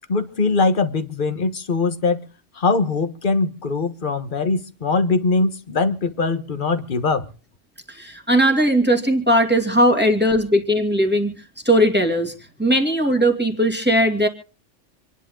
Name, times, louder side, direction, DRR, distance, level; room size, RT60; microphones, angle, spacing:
voice 1, 0.1-2.3 2.5-7.3, left 3 dB, 40° left, 1.4 m, -21 dB
voice 2, 7.9-11.3 11.6-14.3, equal, 10° right, 2.6 m, -18 dB
27.5 x 10.5 x 3.8 m
omnidirectional pair, 1.3 m